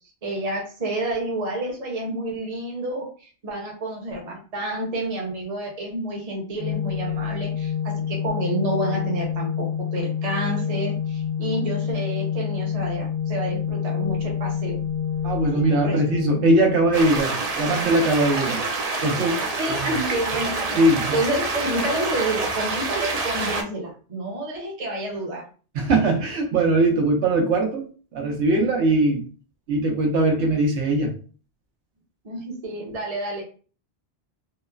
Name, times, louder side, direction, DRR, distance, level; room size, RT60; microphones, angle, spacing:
voice 1, 0.2-14.8 15.8-16.5 19.6-20.8 21.1-25.4 32.2-33.4, right 1 dB, 40° right, -1 dB, 0.8 m, -29 dB
Organ, 6.6-17.5, left 8 dB, 65° left, 1.1 m, -27 dB
voice 2, 15.2-18.6 19.0-19.9 20.8-21.2 25.7-27.9 28.1-29.2 29.7-31.1, right 2 dB, 85° right, 1 dB, 1.0 m, -21 dB
sound 1, 16.9-23.6, right 3 dB, 55° right, 0.4 m, -27 dB
3.0 x 2.0 x 2.3 m, 0.39 s
omnidirectional pair, 1.1 m